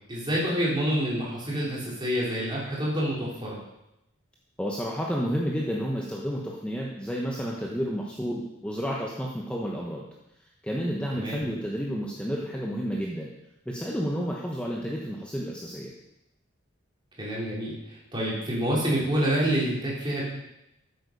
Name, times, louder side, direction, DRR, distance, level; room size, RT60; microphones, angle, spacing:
voice 1, 0.1-3.6 11.1-11.4 17.2-20.2, equal, 25° right, -5 dB, 3.8 m, -27 dB
voice 2, 4.6-10.1 10.6-13.3 13.7-15.9, equal, 5° left, -3 dB, 1.1 m, -31 dB
13.5 x 8.4 x 5.3 m, 0.87 s
head